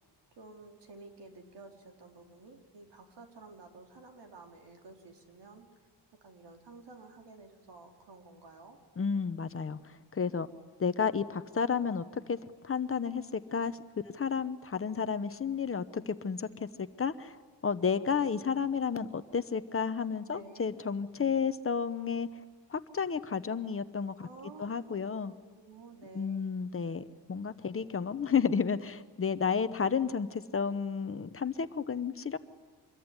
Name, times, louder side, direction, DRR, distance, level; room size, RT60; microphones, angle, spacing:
voice 1, 0.4-5.7 6.2-8.8 20.2-20.7 24.2-26.5, right 3 dB, 75° right, 3 dB, 4.3 m, -52 dB
voice 2, 9.0-10.5 10.8-12.4 12.6-13.8 14.1-17.4 17.6-22.3 22.7-24.3 24.6-25.3 26.1-32.4, left 6 dB, 30° left, 11 dB, 0.9 m, -32 dB
26.0 x 22.5 x 9.8 m, 1.5 s
wide cardioid pair, 165°, 42 cm